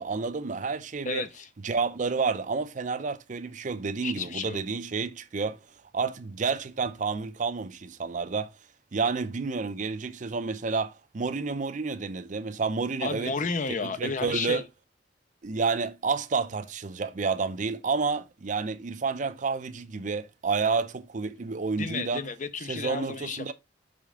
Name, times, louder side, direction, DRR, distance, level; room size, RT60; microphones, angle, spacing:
voice 1, 0.0-1.2 1.6-5.6 5.9-8.5 8.9-13.3 13.7-14.6 15.4-22.2 22.7-23.5, right 4 dB, 45° right, 0.5 m, -30 dB
voice 2, 1.0-1.5 4.0-4.6 13.0-14.6 21.8-23.5, left 4 dB, 40° left, 0.5 m, -32 dB
5.6 x 5.1 x 3.5 m
head